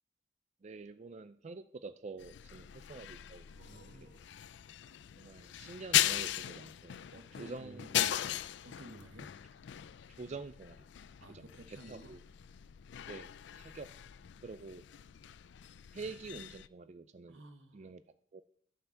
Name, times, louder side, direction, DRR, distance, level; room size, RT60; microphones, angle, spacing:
voice 1, 0.6-3.8 5.2-7.1 7.4-8.1 10.1-10.9 11.3-12.2 13.0-13.9 14.4-14.8 15.9-17.4 17.7-18.0 18.3-18.4, right 4 dB, 35° right, 12 dB, 0.4 m, -47 dB
sound 1, 2.2-16.7, left 12 dB, 65° left, 0.4 m, -38 dB
voice 2, 3.5-4.2 7.1-7.9 8.6-9.3 11.2-12.2 17.3-17.9, right 1 dB, 90° right, 8 dB, 1.3 m, -53 dB
12.0 x 5.6 x 7.1 m, 0.62 s
head